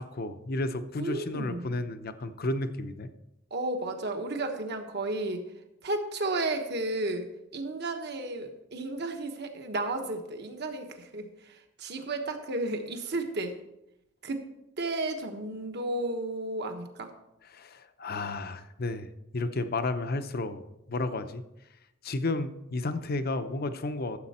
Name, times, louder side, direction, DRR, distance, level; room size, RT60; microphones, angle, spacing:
voice 1, 0.0-3.1 17.5-21.4 22.0-24.2, left 2 dB, 50° left, 10 dB, 0.7 m, -32 dB
voice 2, 1.0-1.7 3.5-5.4 5.8-13.6 14.2-14.4 14.8-17.1, right 2 dB, 55° right, 5 dB, 1.2 m, -33 dB
13.0 x 7.6 x 4.3 m, 0.90 s
head